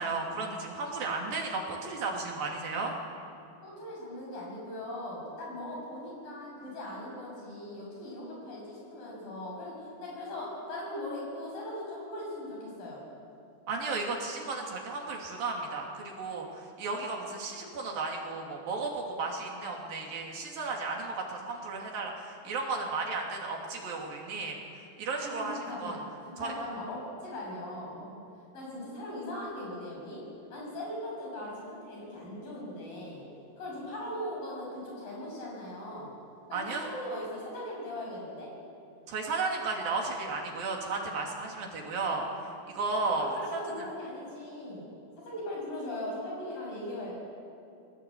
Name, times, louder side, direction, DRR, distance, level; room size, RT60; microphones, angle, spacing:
voice 1, 0.0-3.0 13.7-24.6 25.0-26.0 26.4-26.5 36.5-36.9 39.1-43.9, right 3 dB, 65° right, 0 dB, 4.5 m, -34 dB
voice 2, 3.6-13.0 25.3-28.2 28.5-30.2 30.5-33.2 33.6-36.1 36.5-38.5 43.1-44.9 45.2-47.1, left 1 dB, 60° left, -3 dB, 8.4 m, -39 dB
21.5 x 19.0 x 8.7 m, 2.6 s
omnidirectional pair, 4.5 m